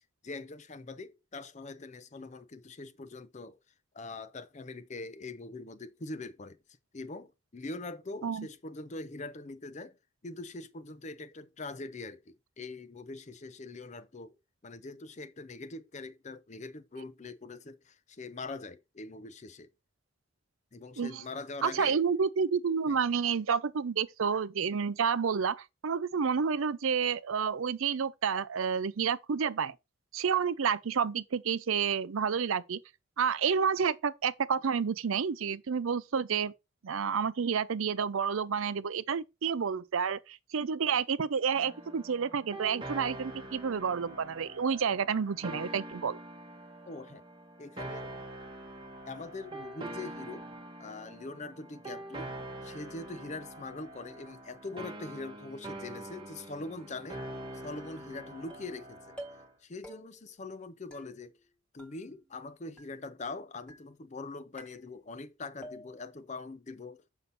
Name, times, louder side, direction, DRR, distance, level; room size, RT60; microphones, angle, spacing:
voice 1, 0.2-3.6 3.9-6.6 6.9-10.0 10.2-14.3 14.6-19.7 20.7-22.0 22.9-23.0 46.9-47.2 47.6-48.1 49.1-50.5 50.8-52.3 52.6-57.2 57.6-59.2 59.6-61.3 61.7-67.0, left 3 dB, 30° left, 0.5 m, -43 dB
voice 2, 21.6-29.7 30.1-32.8 33.2-36.5 36.8-46.2, right 6 dB, 70° right, 0.5 m, -30 dB
sound 1, 41.5-59.5, right 1 dB, 20° right, 1.0 m, -44 dB
sound 2, 58.5-58.8 59.2-59.6 59.8-60.4 60.9-61.5 61.8-62.5 62.8-63.3 63.7-64.2 64.6-65.3 65.6-66.2, right 1 dB, 5° left, 1.4 m, -51 dB
6.9 x 5.6 x 4.1 m
head